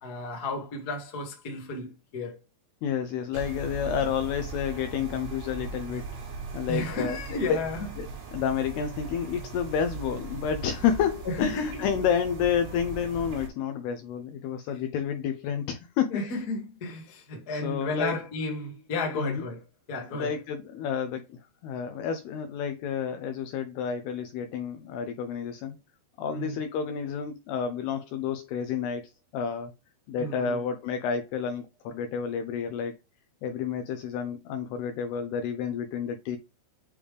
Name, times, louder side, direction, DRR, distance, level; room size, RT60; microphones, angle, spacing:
voice 1, 0.0-2.4 6.7-7.9 11.2-11.9 16.1-19.6 19.9-20.3 26.3-26.6 30.2-30.6, left 2 dB, 55° left, 1.0 m, -33 dB
voice 2, 2.8-6.1 6.5-7.2 7.5-7.6 8.0-16.3 17.5-18.2 19.2-19.4 20.1-25.8 26.2-29.7 30.1-33.0 33.4-36.4, left 7 dB, 85° left, 2.3 m, -30 dB
sound 1, 3.3-13.5, right 5 dB, 90° right, 4.2 m, -39 dB
8.6 x 3.4 x 3.3 m
omnidirectional pair, 5.2 m